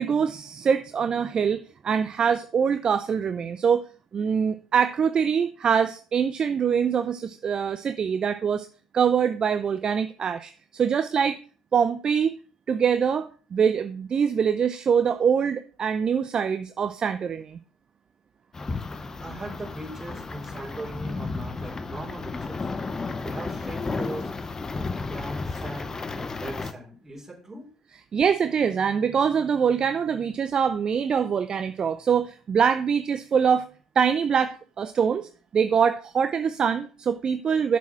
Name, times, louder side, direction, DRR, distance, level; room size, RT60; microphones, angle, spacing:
voice 1, 0.0-3.8 4.1-8.7 8.9-11.4 11.7-12.4 12.7-17.6 28.1-33.7 34.0-37.8, right 7 dB, 40° right, 11 dB, 0.5 m, -24 dB
sound 1, 18.5-26.7, left 3 dB, 25° left, 0.8 m, -33 dB
voice 2, 19.2-22.6 23.2-24.3 24.7-27.7, right 1 dB, 15° right, -1 dB, 3.7 m, -39 dB
7.2 x 6.2 x 5.8 m, 0.38 s
figure-of-eight pair, 60°, 2 cm